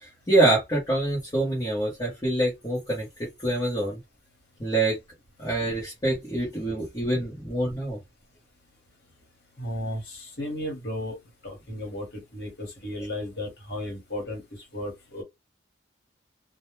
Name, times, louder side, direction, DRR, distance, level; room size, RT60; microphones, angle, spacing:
voice 1, 0.0-4.0 4.6-5.0 5.4-8.0, right 2 dB, 20° left, 0.9 m, -25 dB
voice 2, 9.6-11.2 11.4-14.4 14.7-15.2, left 1 dB, 55° left, 1.2 m, -34 dB
2.2 x 2.1 x 3.0 m
head